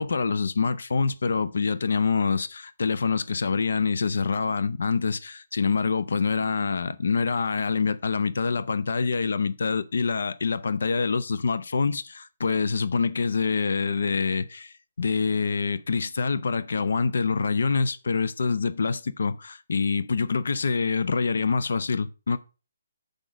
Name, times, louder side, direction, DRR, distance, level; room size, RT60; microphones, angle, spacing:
voice 1, 0.0-22.4, left 4 dB, 60° left, 0.5 m, -26 dB
6.0 x 5.0 x 6.2 m
hypercardioid pair, 180°, 0 cm